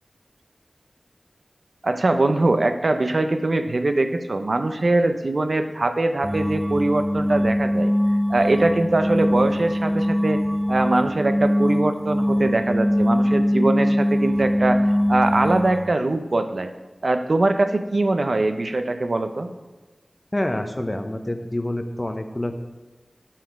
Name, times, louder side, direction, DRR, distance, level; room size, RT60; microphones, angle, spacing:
voice 1, 1.8-7.9 8.3-10.4 10.7-16.7 17.0-19.5, right 2 dB, 65° right, 8 dB, 0.5 m, -22 dB
sound 1, 6.2-15.9, equal, 5° right, 0.3 m, -22 dB
voice 2, 20.3-22.5, left 1 dB, 25° left, 6 dB, 0.7 m, -27 dB
5.7 x 4.9 x 6.0 m, 1.2 s
wide cardioid pair, 50°, 0 cm